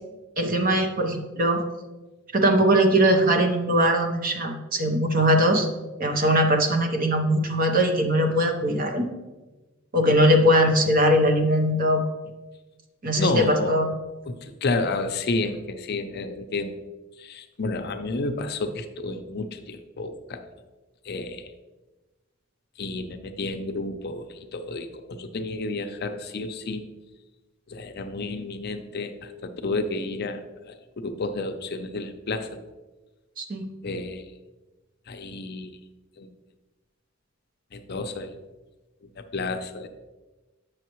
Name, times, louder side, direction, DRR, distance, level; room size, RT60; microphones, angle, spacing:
voice 1, 0.4-1.6 2.3-5.7 6.0-9.1 9.9-12.0 13.0-13.9 33.4-33.7, equal, 40° right, 4 dB, 0.9 m, -21 dB
voice 2, 13.2-13.8 14.3-16.7 17.2-20.4 21.0-21.5 22.8-26.9 27.7-32.5 33.8-34.3 35.1-35.7 36.2-36.3 37.7-38.4 39.0-39.9, left 3 dB, 50° left, 7 dB, 0.5 m, -31 dB
8.1 x 6.3 x 3.0 m, 1.1 s
head